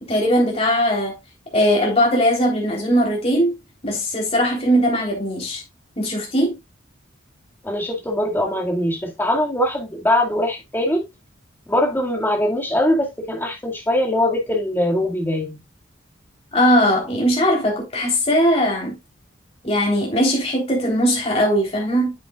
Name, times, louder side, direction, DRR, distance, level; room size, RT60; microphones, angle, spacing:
voice 1, 0.1-1.2 1.5-3.5 3.8-5.6 6.0-6.5 16.5-19.0 19.6-22.1, equal, 30° left, 3.7 m, -19 dB
voice 2, 7.6-11.0 11.7-15.6, left 1 dB, 10° left, 2.1 m, -22 dB
8.9 x 7.8 x 2.4 m
head